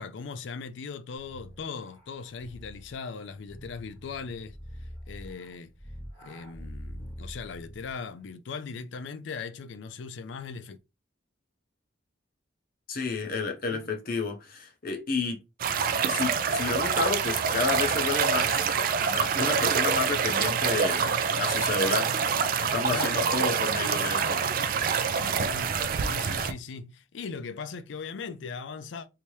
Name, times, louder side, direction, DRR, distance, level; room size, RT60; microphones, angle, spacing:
voice 1, 0.0-4.6 5.1-5.7 6.2-10.8 13.7-13.9 22.9-23.2 24.9-29.1, left 5 dB, 70° left, 0.4 m, -39 dB
sound 1, 1.2-8.1, equal, 20° left, 1.7 m, -45 dB
voice 2, 12.9-15.4 16.1-18.6 19.0-22.1 22.6-24.4, left 4 dB, 50° left, 0.8 m, -31 dB
sound 2, 15.6-26.5, right 6 dB, 45° right, 0.3 m, -26 dB
3.3 x 2.7 x 3.0 m
head